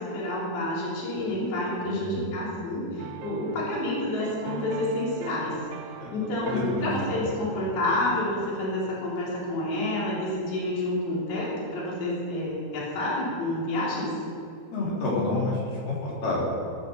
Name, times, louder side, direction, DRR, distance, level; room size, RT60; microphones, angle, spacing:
voice 1, 0.0-5.6 6.1-14.1, left 1 dB, 85° left, -6 dB, 5.7 m, -29 dB
voice 2, 1.9-2.3 6.0-6.1 6.4-6.9 7.2-7.3 14.7-16.4, left 2 dB, 55° left, -5 dB, 5.2 m, -29 dB
sound 1, 3.0-9.6 9.9-10.1, right 9 dB, 80° right, 2.4 m, -40 dB
20.5 x 8.3 x 6.7 m, 2.6 s
omnidirectional pair, 4.9 m